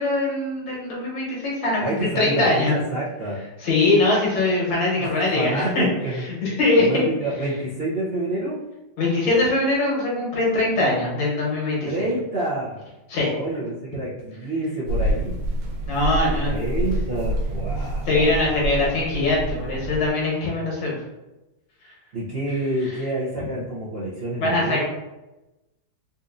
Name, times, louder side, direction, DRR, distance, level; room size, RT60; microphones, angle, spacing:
voice 1, 0.0-2.7 3.6-5.9 6.2-7.1 9.0-11.9 13.1-13.3 15.9-16.8 18.1-21.0 24.4-24.8, left 2 dB, 80° left, -4 dB, 1.9 m, -22 dB
voice 2, 1.8-3.4 5.0-6.2 6.8-8.6 11.8-12.8 13.2-15.3 16.5-18.3 22.1-24.8, right 1 dB, 55° right, -10 dB, 0.6 m, -28 dB
sound 1, 14.9-20.1, right 1 dB, 80° right, 1.3 m, -27 dB
4.1 x 2.5 x 2.5 m, 0.99 s
omnidirectional pair, 2.0 m